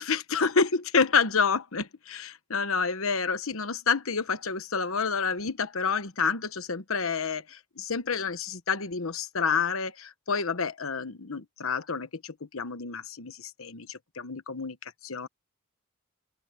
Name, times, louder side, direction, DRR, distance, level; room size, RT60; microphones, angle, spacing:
voice 1, 0.0-15.3, left 5 dB, 70° left, 1.1 m, -29 dB
open air
head